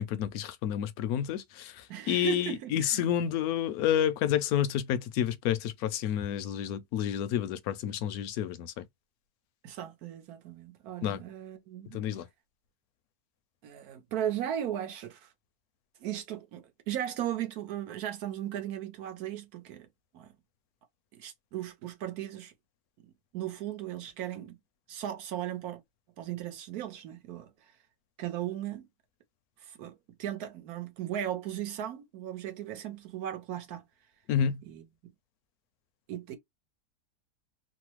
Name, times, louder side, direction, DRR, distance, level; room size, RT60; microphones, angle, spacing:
voice 1, 0.0-8.8 11.0-11.2 11.9-12.3 34.3-34.6, left 10 dB, 75° left, 1.0 m, -30 dB
voice 2, 1.9-3.1 9.6-12.0 13.6-15.3 16.0-19.9 20.1-20.3 21.1-22.5 23.3-24.6 24.9-25.8 26.2-27.5 28.2-28.9 29.6-33.8 34.7-35.1 36.1-36.4, right 11 dB, 75° right, 1.3 m, -37 dB
3.2 x 2.0 x 2.9 m
omnidirectional pair, 1.6 m